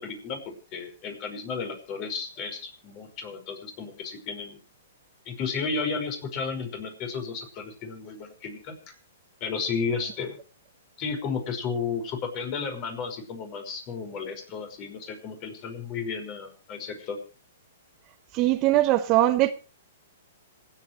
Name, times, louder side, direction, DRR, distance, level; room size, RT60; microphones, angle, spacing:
voice 1, 0.0-4.6 5.3-8.8 9.4-10.4 11.0-17.2, left 5 dB, 35° left, 5.4 m, -33 dB
voice 2, 18.3-19.5, right 15 dB, 35° right, 1.0 m, -21 dB
26.5 x 9.2 x 3.2 m
hypercardioid pair, 125°, 0 cm